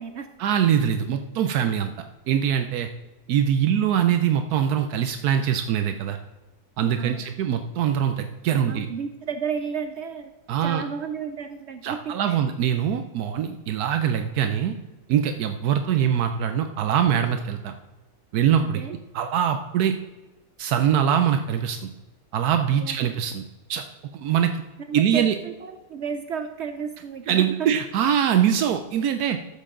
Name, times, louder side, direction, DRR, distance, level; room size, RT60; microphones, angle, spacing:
voice 1, 0.4-1.9 2.3-2.9 3.3-6.2 6.8-8.9 10.5-10.8 11.8-14.7 15.1-17.7 18.3-20.0 20.6-21.9 22.3-23.4 23.7-23.9 24.1-24.6 24.9-25.3 27.3-29.4, right 9 dB, 80° right, 7 dB, 1.1 m, -23 dB
voice 2, 7.0-7.3 8.5-10.3 10.6-12.4 18.6-18.9 22.7-23.0 24.9-27.7, right 6 dB, 60° right, 8 dB, 0.8 m, -33 dB
13.5 x 7.4 x 3.7 m, 1.2 s
omnidirectional pair, 1.6 m